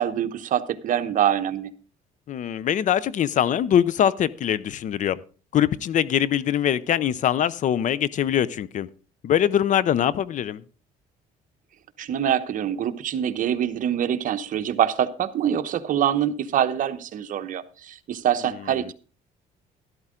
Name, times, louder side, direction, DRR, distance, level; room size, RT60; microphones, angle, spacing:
voice 1, 0.0-1.7 12.0-18.9, right 10 dB, 55° right, 11 dB, 1.0 m, -25 dB
voice 2, 2.3-5.2 5.5-8.9 9.2-10.6, left 10 dB, 50° left, 20 dB, 0.6 m, -22 dB
12.5 x 12.0 x 3.7 m, 0.36 s
cardioid pair, 105°, 16 cm